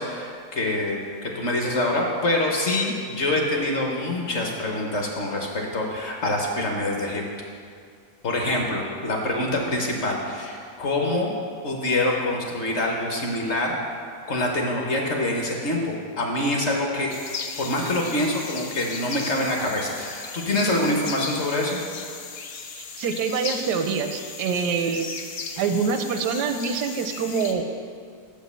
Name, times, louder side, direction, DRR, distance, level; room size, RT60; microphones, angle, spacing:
voice 1, 0.0-7.2 8.2-11.3 11.6-13.7 14.3-17.1 17.6-21.8, left 1 dB, 50° left, 0 dB, 1.0 m, -25 dB
sound 1, 17.1-27.5, left 5 dB, 65° left, 0.6 m, -36 dB
voice 2, 22.8-25.1 25.6-27.7, right 5 dB, 85° right, 7 dB, 1.2 m, -25 dB
6.2 x 5.2 x 6.7 m, 2.2 s
omnidirectional pair, 1.7 m